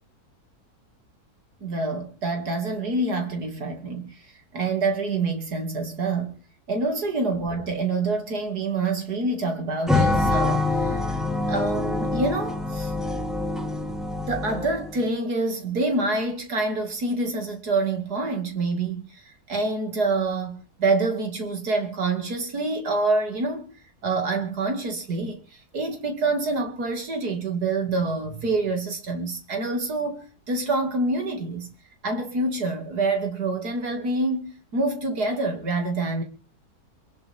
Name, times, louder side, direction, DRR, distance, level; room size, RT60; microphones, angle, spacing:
voice 1, 1.6-6.4 6.7-11.2 11.5-12.9 14.3-23.7 24.0-31.7 32.0-36.2, right 3 dB, 80° right, 3.0 m, -27 dB
sound 1, 9.9-15.0, left 2 dB, ahead, 1.8 m, -25 dB
26.5 x 11.5 x 3.6 m
omnidirectional pair, 1.6 m